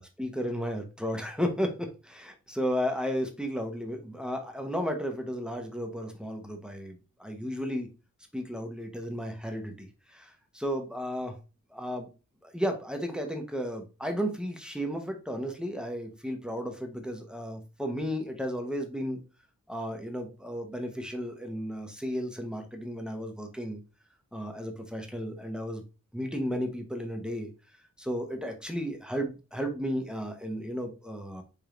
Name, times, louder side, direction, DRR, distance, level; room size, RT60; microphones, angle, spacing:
voice 1, 0.0-7.9 8.3-11.4 11.7-12.1 12.4-19.2 19.7-23.8 24.3-25.8 26.1-27.5 28.0-31.4, equal, 5° right, 4 dB, 0.8 m, -34 dB
5.0 x 3.5 x 3.0 m, 0.31 s
wide cardioid pair, 120°, 31 cm